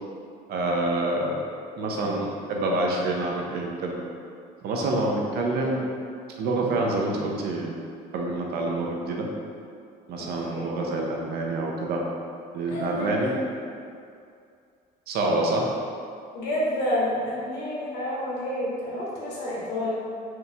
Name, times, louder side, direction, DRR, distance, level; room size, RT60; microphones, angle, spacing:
voice 1, 0.5-1.4 1.8-4.0 4.6-5.9 6.4-7.8 8.1-9.3 10.1-12.0 12.5-13.3 15.1-15.6, right 2 dB, 70° right, -1 dB, 0.7 m, -27 dB
voice 2, 1.8-2.2 5.5-5.7 10.2-10.6 12.7-13.3 16.3-19.9, left 1 dB, 85° left, -6 dB, 1.0 m, -29 dB
4.5 x 2.6 x 3.3 m, 2.4 s
cardioid pair, 110°, 17 cm